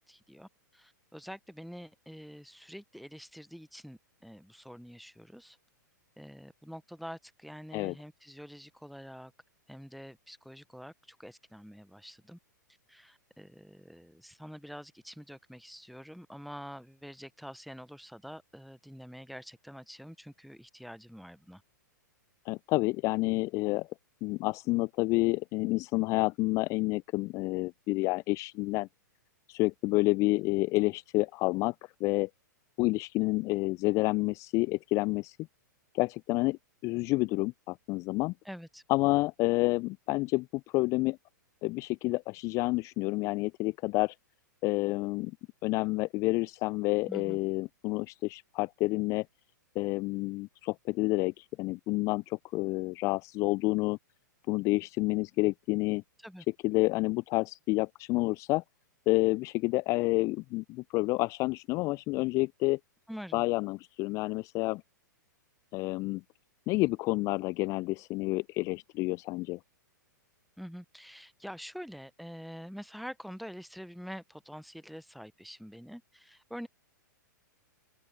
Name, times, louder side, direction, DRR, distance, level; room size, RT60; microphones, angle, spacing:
voice 1, 0.0-5.6 6.2-9.3 9.7-12.4 12.9-21.6 38.4-38.8 47.1-47.4 56.2-56.4 63.1-63.4 70.6-76.7, equal, ahead, 0.7 m, -46 dB
voice 2, 22.5-23.9 24.2-28.9 29.5-31.7 32.0-32.3 32.8-35.4 35.9-38.3 38.9-40.5 40.7-41.2 41.6-44.1 44.6-45.3 45.6-49.2 49.8-54.0 54.5-56.0 56.6-58.6 59.1-62.8 63.3-64.8 65.7-66.2 66.7-69.6, left 22 dB, 30° left, 0.3 m, -29 dB
open air
figure-of-eight pair, 105°, 10 cm